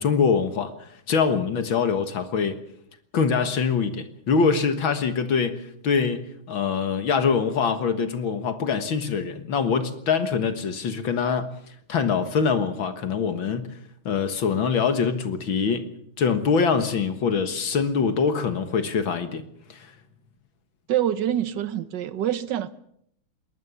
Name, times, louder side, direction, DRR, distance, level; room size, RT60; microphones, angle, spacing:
voice 1, 0.0-2.6 3.1-11.5 11.9-13.7 14.1-15.9 16.2-19.4 19.7-19.9, left 5 dB, 65° left, 2.2 m, -24 dB
voice 2, 20.9-22.7, right 11 dB, 60° right, 1.5 m, -25 dB
22.5 x 19.5 x 7.1 m
omnidirectional pair, 2.4 m